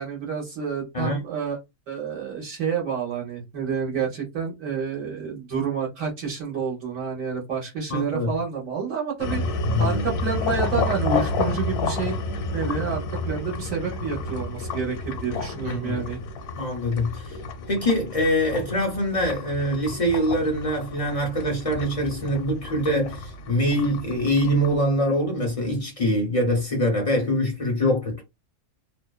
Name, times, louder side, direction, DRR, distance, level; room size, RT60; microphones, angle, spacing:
voice 1, 0.0-1.6 1.9-12.2 12.5-16.2, right 6 dB, 65° right, 1.1 m, -29 dB
voice 2, 7.9-8.3 9.6-10.1 15.6-16.1 16.5-17.4 17.7-28.2, equal, 60° left, 0.3 m, -24 dB
sound 1, 9.2-24.8, left 3 dB, 85° left, 1.1 m, -30 dB
2.7 x 2.0 x 2.2 m
omnidirectional pair, 1.6 m